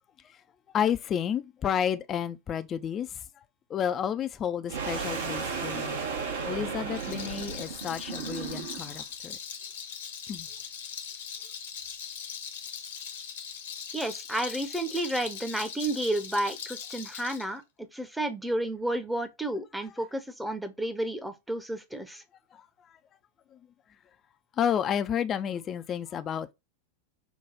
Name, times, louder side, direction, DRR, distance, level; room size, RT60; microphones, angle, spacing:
voice 1, 0.7-3.2 3.7-6.0 6.5-9.4 10.3-10.5 22.5-23.0 23.5-23.6 24.6-26.5, left 8 dB, 25° left, 0.5 m, -31 dB
sound 1, 4.7-9.0, right 5 dB, 60° right, 1.0 m, -34 dB
Rattle, 6.8-17.5, left 7 dB, 60° left, 1.0 m, -40 dB
voice 2, 13.9-22.2, right 1 dB, 5° right, 0.8 m, -31 dB
5.8 x 2.2 x 4.0 m
figure-of-eight pair, 90°, 0 cm